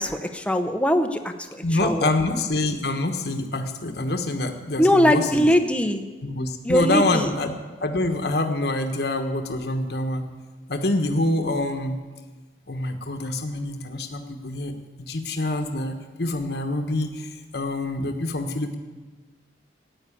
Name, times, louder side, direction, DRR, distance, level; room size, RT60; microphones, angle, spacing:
voice 1, 0.0-2.1 4.8-6.0 6.6-7.3, equal, 5° left, 6 dB, 0.8 m, -21 dB
voice 2, 1.6-5.5 6.2-7.5 7.8-10.3 10.7-12.0 12.7-14.7 15.1-18.8, left 2 dB, 65° left, 5 dB, 1.2 m, -26 dB
14.0 x 9.7 x 8.4 m, 1.3 s
head